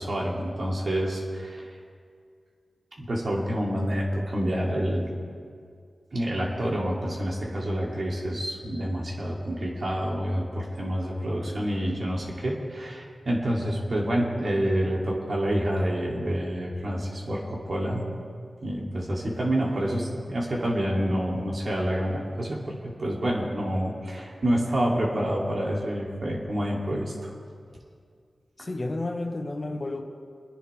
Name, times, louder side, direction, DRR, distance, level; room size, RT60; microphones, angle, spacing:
voice 1, 0.0-1.7 3.0-5.1 6.1-18.1 18.6-27.3 28.6-28.7, equal, 55° right, -3 dB, 3.0 m, -28 dB
voice 2, 28.6-30.0, left 2 dB, 40° left, 2 dB, 1.5 m, -31 dB
29.5 x 10.0 x 3.5 m, 2.2 s
cardioid pair, 60°, 0 cm